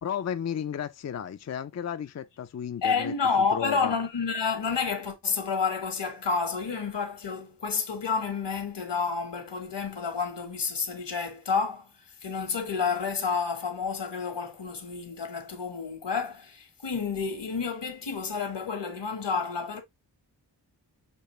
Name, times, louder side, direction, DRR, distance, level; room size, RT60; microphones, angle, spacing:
voice 1, 0.0-4.0, left 8 dB, 40° left, 0.4 m, -34 dB
voice 2, 2.8-11.9 12.2-19.8, left 5 dB, 80° left, 1.4 m, -30 dB
6.7 x 2.5 x 3.1 m
wide cardioid pair, 70°, 42 cm